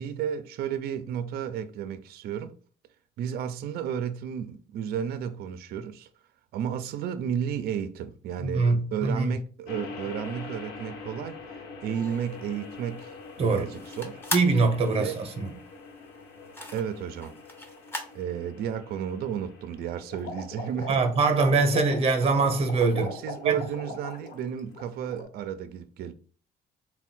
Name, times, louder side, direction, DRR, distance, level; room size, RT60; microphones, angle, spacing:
voice 1, 0.0-2.5 3.2-6.1 6.5-14.2 14.9-15.2 16.7-17.3 18.1-21.0 22.9-26.1, right 8 dB, 65° right, 0.4 m, -33 dB
voice 2, 8.4-9.3 13.4-13.6 14.3-15.5 20.9-23.1 23.4-23.6, right 3 dB, 35° right, 0.8 m, -23 dB
sound 1, 9.7-25.0, left 4 dB, 80° left, 1.0 m, -45 dB
sound 2, 11.9-18.2, left 1 dB, 15° left, 0.7 m, -39 dB
sound 3, 20.1-24.4 24.7-25.2, left 3 dB, 50° left, 1.0 m, -40 dB
3.5 x 2.2 x 4.2 m
cardioid pair, 110°, 17 cm